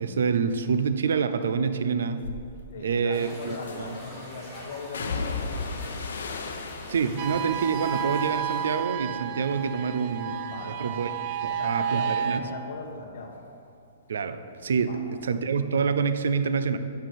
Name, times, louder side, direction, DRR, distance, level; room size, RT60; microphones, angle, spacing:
voice 1, 0.0-2.3 2.8-4.0 6.9-11.1 11.4-12.4 14.1-16.8, right 5 dB, 80° right, 11 dB, 0.5 m, -27 dB
sound 1, 2.2-2.4 3.7-4.1 4.9-9.2 9.5-10.1 10.5-13.8 14.1-15.2 15.5-15.6, left 4 dB, 80° left, 0.8 m, -37 dB
voice 2, 2.7-6.1 10.5-11.0 11.5-13.4 14.9-15.0, left 4 dB, 50° left, 2 dB, 1.3 m, -39 dB
sound 2, 3.1-8.8, left 1 dB, 5° left, 2.3 m, -45 dB
sound 3, 7.2-12.4, right 9 dB, 30° right, 0.3 m, -31 dB
9.2 x 6.9 x 4.3 m, 2.5 s
hypercardioid pair, 180°, 0 cm